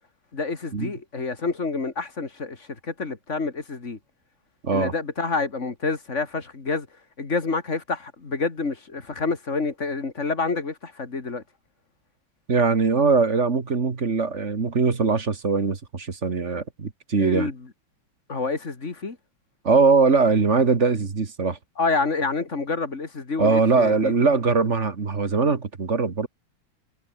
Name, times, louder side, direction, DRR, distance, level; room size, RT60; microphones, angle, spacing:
voice 1, 0.3-4.0 4.7-6.9 7.2-11.4 17.2-17.6 18.3-19.2 21.8-24.2, left 4 dB, 35° left, 2.7 m, -28 dB
voice 2, 12.5-17.5 19.6-21.6 23.4-26.3, right 4 dB, 35° right, 2.0 m, -21 dB
omnidirectional pair, 2.1 m